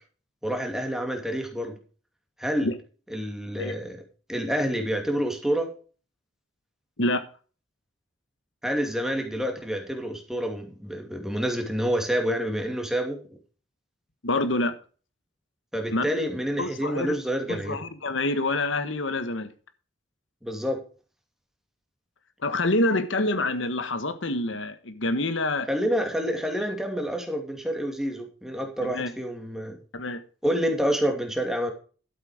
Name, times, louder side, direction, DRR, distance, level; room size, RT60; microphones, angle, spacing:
voice 1, 0.4-1.8 2.4-2.7 3.1-4.0 4.3-5.7 8.6-13.2 15.7-17.8 20.4-20.8 25.7-29.8 30.4-31.7, equal, ahead, 2.5 m, -28 dB
voice 2, 14.2-14.8 15.9-16.0 16.6-17.2 17.5-19.5 22.4-25.7 28.8-29.1 29.9-30.2, left 2 dB, 80° left, 1.4 m, -26 dB
12.5 x 8.0 x 4.9 m
head